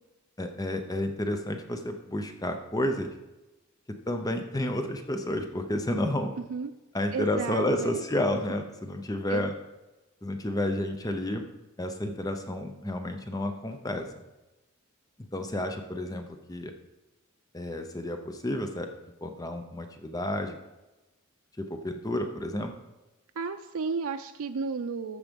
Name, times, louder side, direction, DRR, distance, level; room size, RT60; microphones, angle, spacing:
voice 1, 0.4-3.1 4.1-6.3 6.9-9.5 10.2-11.4 11.8-14.1 15.3-16.7 17.5-18.9 19.2-20.6 21.6-22.7, left 1 dB, 15° left, 6 dB, 0.7 m, -31 dB
voice 2, 7.1-8.0 9.3-9.5 23.4-25.2, right 5 dB, 80° right, 7 dB, 0.5 m, -33 dB
13.5 x 4.9 x 5.2 m, 1.0 s
head